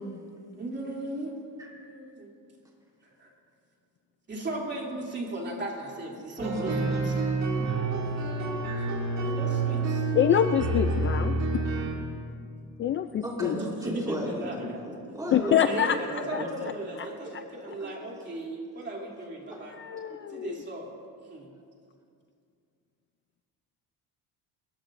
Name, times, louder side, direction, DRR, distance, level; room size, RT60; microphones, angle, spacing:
voice 1, 0.5-2.3 3.2-3.3 4.3-7.1 9.2-10.1 13.5-14.8 15.7-19.8 20.3-20.9 21.2-21.5, right 1 dB, 30° right, -1 dB, 2.9 m, -37 dB
voice 2, 6.4-7.0 12.3-12.4 13.2-16.5 17.0-17.1 17.6-17.9 19.5-19.6, equal, 10° right, -2 dB, 3.7 m, -35 dB
sound 1, 6.4-11.9, right 3 dB, 50° right, 2.5 m, -28 dB
voice 3, 10.1-11.4 12.8-13.6 15.3-16.4 19.8-20.6, left 9 dB, 35° left, 9 dB, 0.4 m, -26 dB
30.0 x 15.0 x 2.6 m, 2.3 s
cardioid pair, 130°, 36 cm